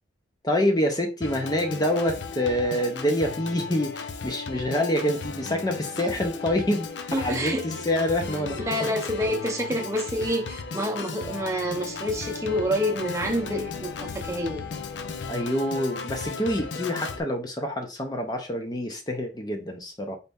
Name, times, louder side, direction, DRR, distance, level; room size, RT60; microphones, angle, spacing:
voice 1, 0.4-6.9 7.2-8.9 15.3-20.2, left 1 dB, 20° left, 0.5 m, -26 dB
Organ, 1.2-17.2, left 5 dB, 80° left, 0.5 m, -35 dB
voice 2, 7.1-7.6 8.6-14.7, equal, 15° right, 0.7 m, -28 dB
4.1 x 2.6 x 3.5 m
head